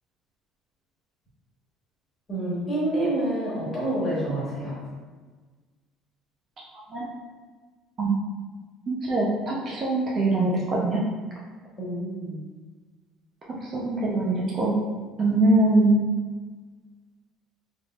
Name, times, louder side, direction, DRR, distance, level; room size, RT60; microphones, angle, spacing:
voice 1, 2.3-4.8 11.8-12.4, right 1 dB, 25° left, -7 dB, 1.4 m, -28 dB
voice 2, 8.9-11.0 13.6-14.8 15.2-16.0, right 2 dB, 30° right, -4 dB, 0.5 m, -23 dB
3.8 x 3.4 x 2.3 m, 1.4 s
cardioid pair, 155°, 0 cm